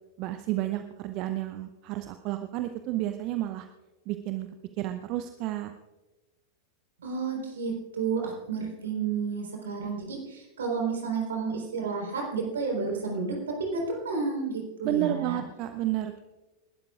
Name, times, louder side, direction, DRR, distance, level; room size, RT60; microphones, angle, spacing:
voice 1, 0.2-3.7 4.1-4.5 4.8-5.7 14.8-16.2, right 14 dB, 40° right, 8 dB, 0.7 m, -31 dB
voice 2, 7.0-15.4, right 4 dB, 65° right, 0 dB, 4.1 m, -31 dB
28.5 x 12.5 x 2.5 m, 1.1 s
figure-of-eight pair, 90°, 0 cm